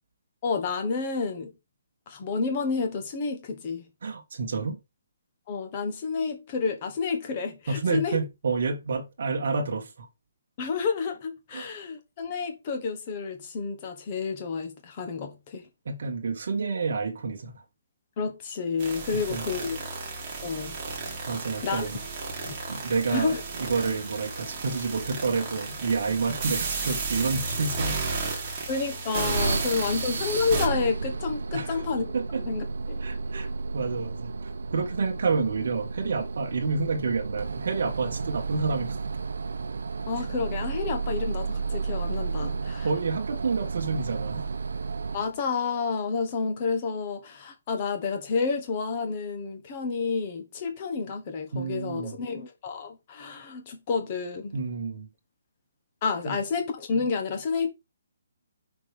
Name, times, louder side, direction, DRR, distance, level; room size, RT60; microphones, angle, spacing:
voice 1, 0.4-1.5 2.1-3.9 5.5-8.2 10.6-15.7 18.2-20.0 20.4-20.8 21.6-21.9 22.4-22.5 23.1-23.4 28.7-32.0 32.3-33.0 40.1-42.9 45.1-54.5 56.0-57.7, left 5 dB, 20° left, 1.2 m, -30 dB
voice 2, 4.0-4.8 7.7-10.1 11.5-11.7 15.8-17.6 19.3-19.4 21.3-22.0 22.7-28.0 28.4-28.5 29.5-29.6 31.5-31.8 32.1-32.4 33.0-39.0 42.4-42.5 42.8-44.5 51.5-52.2 54.5-55.1 56.2-56.4, right 4 dB, 50° right, 1.6 m, -29 dB
sound 1, 18.8-30.7, right 4 dB, 20° right, 1.7 m, -33 dB
sound 2, 29.3-45.4, right 4 dB, 75° right, 0.7 m, -32 dB
5.8 x 4.6 x 5.1 m
hypercardioid pair, 180°, 0 cm